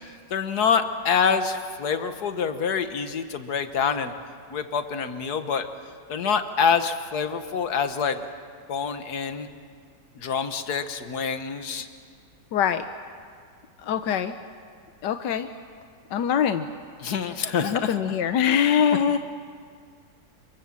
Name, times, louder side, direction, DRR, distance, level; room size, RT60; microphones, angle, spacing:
voice 1, 0.3-4.1 4.5-5.7 6.1-8.2 8.7-9.5 10.2-11.9 17.0-18.0, left 6 dB, 65° left, 8 dB, 1.8 m, -26 dB
voice 2, 12.5-12.8 13.8-14.3 15.0-15.5 16.1-16.7 17.6-19.2, left 8 dB, 90° left, 8 dB, 1.5 m, -23 dB
26.5 x 24.0 x 7.5 m, 2.1 s
omnidirectional pair, 1.8 m